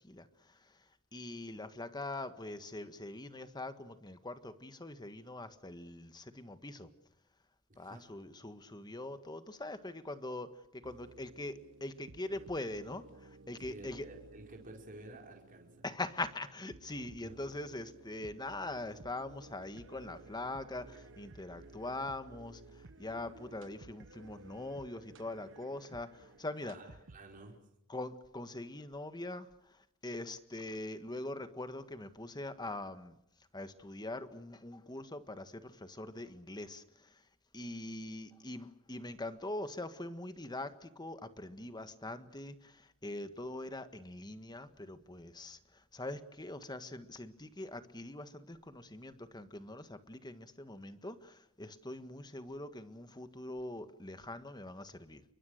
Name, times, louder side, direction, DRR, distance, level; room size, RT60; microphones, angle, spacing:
voice 1, 0.0-6.9 7.8-14.1 15.8-26.8 27.9-33.2 33.5-37.3 37.5-55.2, left 2 dB, 20° left, 10 dB, 1.6 m, -43 dB
voice 2, 7.7-8.0 13.6-15.8 17.2-17.3 26.6-27.6, right 2 dB, 40° right, 0 dB, 5.1 m, -52 dB
sound 1, 10.8-27.6, right 2 dB, 60° right, 1.1 m, -56 dB
29.0 x 23.5 x 6.6 m, 0.77 s
head